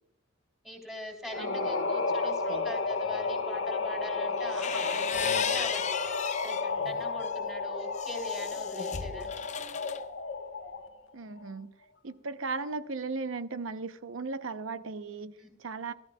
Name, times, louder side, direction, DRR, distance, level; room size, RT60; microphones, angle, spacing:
voice 1, 0.6-9.4 15.4-15.5, equal, ahead, 3.7 m, -42 dB
sound 1, 1.3-11.0, left 4 dB, 70° left, 1.2 m, -32 dB
voice 2, 1.4-1.9 2.2-2.7 11.1-11.7 12.0-15.3 15.6-15.9, right 4 dB, 75° right, 0.8 m, -37 dB
sound 2, 4.4-6.7 7.2-10.0, left 7 dB, 35° left, 0.5 m, -36 dB
19.5 x 13.5 x 2.3 m
head